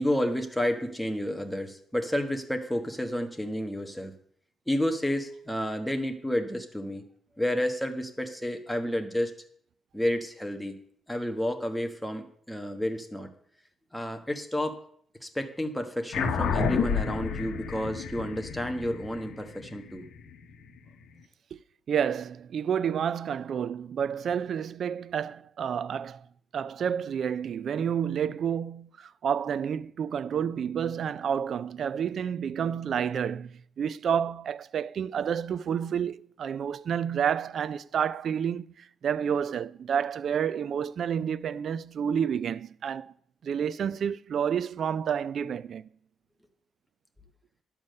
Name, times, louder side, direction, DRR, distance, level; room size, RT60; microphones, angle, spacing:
voice 1, 0.0-4.1 4.7-7.0 7.4-9.3 9.9-10.8 11.1-13.3 13.9-14.8 15.2-20.1, equal, 5° left, 1.2 m, -30 dB
sound 1, 16.1-20.9, left 6 dB, 75° left, 1.2 m, -31 dB
voice 2, 21.9-26.3 26.5-43.1 43.4-45.9, right 8 dB, 55° right, 0.4 m, -30 dB
11.0 x 7.2 x 6.5 m
cardioid pair, 150°, 0 cm